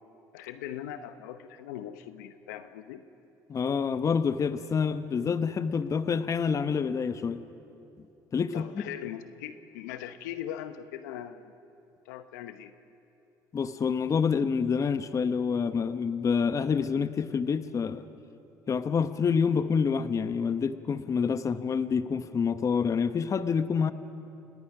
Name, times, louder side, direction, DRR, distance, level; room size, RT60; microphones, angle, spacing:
voice 1, 0.3-3.0 8.5-11.5 12.0-12.7, left 11 dB, 90° left, 10 dB, 1.0 m, -40 dB
voice 2, 3.5-7.4 8.3-8.7 13.5-18.0 18.7-23.9, left 6 dB, 35° left, 11 dB, 1.0 m, -27 dB
29.5 x 19.0 x 6.0 m, 2.8 s
supercardioid pair, 85°, 9 cm